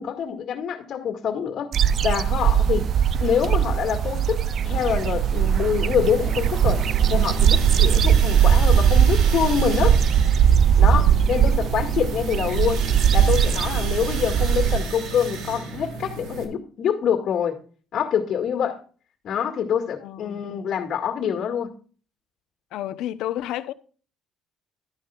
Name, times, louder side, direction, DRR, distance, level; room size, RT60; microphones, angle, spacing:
voice 1, 0.0-1.7 2.0-2.9 3.2-6.8 7.1-10.0 10.8-12.8 13.1-17.6 17.9-18.8 19.2-21.7, left 8 dB, 50° left, 2.2 m, -25 dB
sound 1, 1.7-14.8, right 9 dB, 45° right, 0.5 m, -20 dB
sound 2, 4.5-16.4, right 4 dB, 70° right, 2.8 m, -33 dB
voice 2, 10.8-11.3 20.0-20.5 22.7-23.7, left 13 dB, 75° left, 0.9 m, -32 dB
12.5 x 10.5 x 2.5 m
cardioid pair, 130°, 0 cm